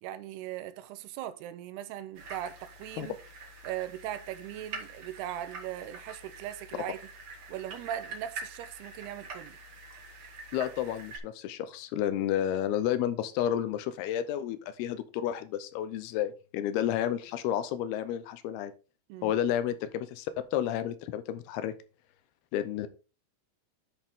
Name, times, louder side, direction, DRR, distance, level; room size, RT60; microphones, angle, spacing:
voice 1, 0.0-3.2 3.6-7.0 7.5-9.6 19.1-19.4, right 12 dB, 80° right, 2.6 m, -39 dB
sound 1, 2.1-11.2, right 3 dB, 60° right, 1.4 m, -45 dB
voice 2, 10.5-18.7 19.2-21.7 22.5-22.9, left 11 dB, 80° left, 2.5 m, -31 dB
10.5 x 5.4 x 3.6 m
omnidirectional pair, 4.9 m